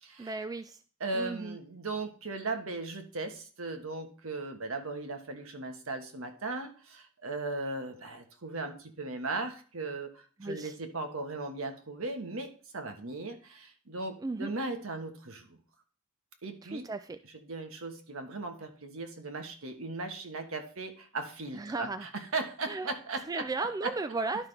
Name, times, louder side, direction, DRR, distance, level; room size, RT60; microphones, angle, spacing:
voice 1, 0.2-0.8 1.1-1.6 10.4-10.8 14.2-14.5 16.6-17.2 21.5-22.1 22.7-22.9 23.3-24.5, right 3 dB, 15° right, 10 dB, 0.3 m, -35 dB
voice 2, 1.0-15.6 16.4-16.9 17.5-23.5 23.8-23.9, right 3 dB, 70° right, 6 dB, 1.4 m, -37 dB
11.5 x 5.7 x 3.4 m, 0.40 s
head